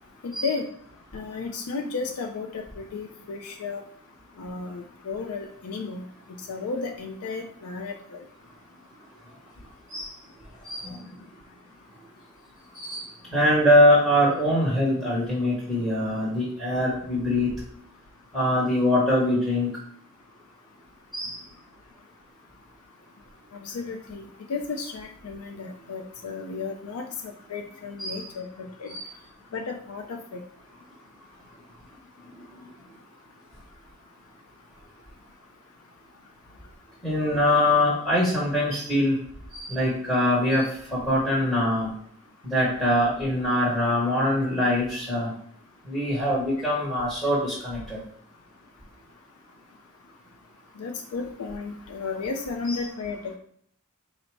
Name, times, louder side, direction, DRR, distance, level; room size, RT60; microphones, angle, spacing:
voice 1, 0.2-0.7 1.1-3.8 4.4-6.1 6.5-8.2 23.5-28.9 29.5-30.4 50.8-53.4, left 4 dB, 90° left, 3 dB, 0.4 m, -33 dB
voice 2, 10.6-11.0 12.7-17.5 18.3-19.7 21.1-21.4 28.0-28.2 28.9-29.0 37.0-39.1 39.5-41.9 42.4-45.3 45.9-48.0 52.6-52.8, left 1 dB, ahead, -8 dB, 0.9 m, -23 dB
3.9 x 2.0 x 4.5 m, 0.64 s
head